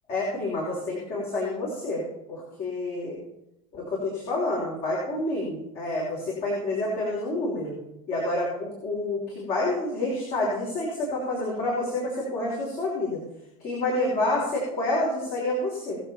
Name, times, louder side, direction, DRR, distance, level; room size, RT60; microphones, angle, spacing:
voice 1, 0.1-2.0 2.3-3.2 3.7-7.8 8.1-13.2 13.6-16.0, left 2 dB, 50° left, -5 dB, 5.4 m, -28 dB
21.5 x 7.5 x 4.5 m, 0.85 s
hypercardioid pair, 85°, 19 cm